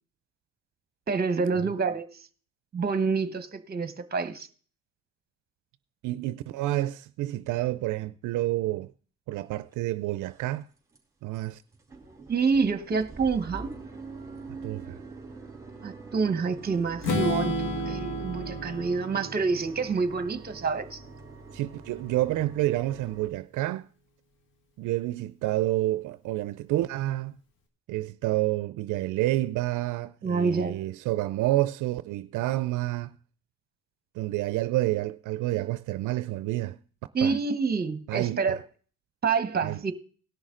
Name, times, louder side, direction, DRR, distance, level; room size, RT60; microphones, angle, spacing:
voice 1, 1.1-2.1 2.7-4.5 12.3-13.7 15.8-21.0 30.2-30.9 37.1-38.6 39.2-39.9, right 5 dB, 30° right, 1.1 m, -27 dB
voice 2, 6.0-8.9 9.3-10.7 11.2-11.6 14.6-15.0 21.5-23.9 24.8-27.4 27.9-33.1 34.2-36.8 37.2-37.3 38.1-38.6 39.6-39.8, right 16 dB, 80° right, 0.4 m, -29 dB
sound 1, 9.6-9.7 10.2-10.6 10.9-11.0 11.3-11.5 11.7-23.3, right 3 dB, 10° right, 3.0 m, -44 dB
Strum, 17.0-21.0, equal, 85° left, 1.9 m, -32 dB
18.0 x 6.3 x 3.7 m
cardioid pair, 90°, 30 cm